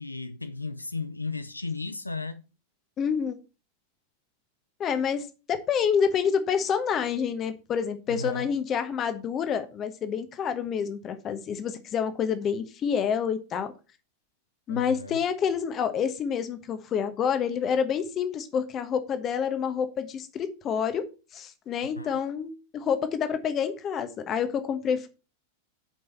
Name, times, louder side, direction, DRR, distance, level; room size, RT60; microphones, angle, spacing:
voice 1, 0.0-2.4 8.1-8.5 14.7-15.2 22.0-22.3, left 3 dB, 85° left, 0.5 m, -35 dB
voice 2, 3.0-3.4 4.8-13.7 14.7-25.1, left 7 dB, 30° left, 1.3 m, -28 dB
7.7 x 5.3 x 6.7 m
figure-of-eight pair, 90°, 0 cm